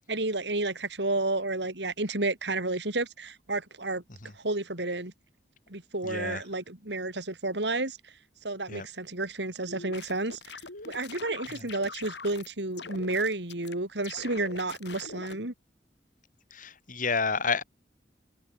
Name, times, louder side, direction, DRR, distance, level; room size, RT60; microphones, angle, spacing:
voice 1, 0.1-4.0 4.4-5.1 5.7-8.0 8.4-10.4 10.8-15.5, right 2 dB, 75° right, 4.3 m, -31 dB
voice 2, 6.0-6.4 8.7-8.9 11.5-11.7 16.5-17.6, left 4 dB, 50° left, 4.5 m, -31 dB
sound 1, 9.7-12.5 12.8-13.7 14.0-15.4, left 4 dB, 75° left, 5.3 m, -43 dB
head